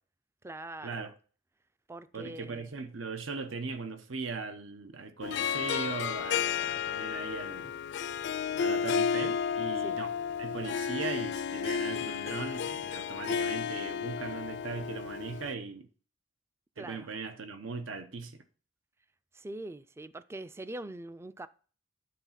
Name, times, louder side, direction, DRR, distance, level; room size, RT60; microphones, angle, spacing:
voice 1, 0.4-1.1 1.9-2.7 9.8-10.0 16.8-17.1 19.3-21.5, right 1 dB, 15° right, 0.3 m, -43 dB
voice 2, 2.1-7.7 8.5-10.1 10.4-15.9 16.8-18.4, right 4 dB, 80° right, 0.9 m, -39 dB
Harp, 5.2-15.5, left 7 dB, 60° left, 0.4 m, -32 dB
10.5 x 4.0 x 5.7 m
head